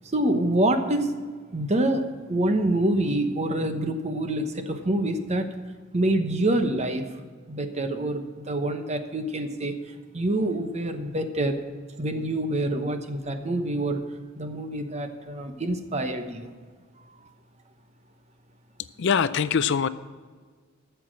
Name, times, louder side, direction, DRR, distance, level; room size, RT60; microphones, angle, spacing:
voice 1, 0.0-1.1 1.5-5.5 5.9-7.1 7.5-9.7 10.1-11.6 12.0-14.0 14.4-16.5, right 1 dB, 35° right, 7 dB, 1.0 m, -26 dB
voice 2, 19.0-19.9, left 6 dB, 60° left, 14 dB, 0.4 m, -23 dB
13.0 x 7.1 x 6.2 m, 1.5 s
head